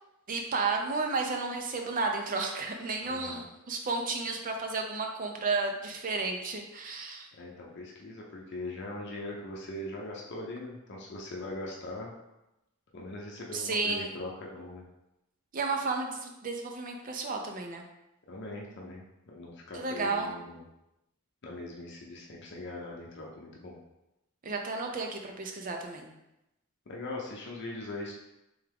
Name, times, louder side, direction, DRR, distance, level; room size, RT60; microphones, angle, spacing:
voice 1, 0.3-7.3 13.5-14.1 15.5-17.8 19.7-20.3 24.4-26.1, right 3 dB, 45° right, 2 dB, 0.6 m, -32 dB
voice 2, 3.0-3.5 7.4-12.1 12.9-14.8 18.3-20.6 21.4-23.8 26.9-28.1, left 2 dB, 60° left, -2 dB, 0.7 m, -41 dB
3.5 x 3.4 x 3.4 m, 0.92 s
head